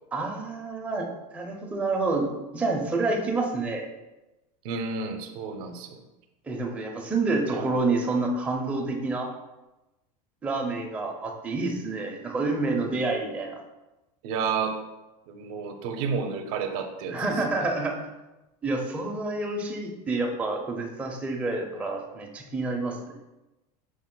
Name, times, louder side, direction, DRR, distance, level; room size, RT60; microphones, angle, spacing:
voice 1, 0.1-3.9 6.5-9.3 10.4-13.6 17.1-18.0 18.6-23.1, right 3 dB, 5° right, 0 dB, 0.4 m, -28 dB
voice 2, 4.6-6.0 7.5-7.7 14.2-14.8 15.3-17.3 17.5-17.6, right 5 dB, 60° right, 6 dB, 0.5 m, -31 dB
5.0 x 2.1 x 3.7 m, 1.0 s
supercardioid pair, 130°, 20 cm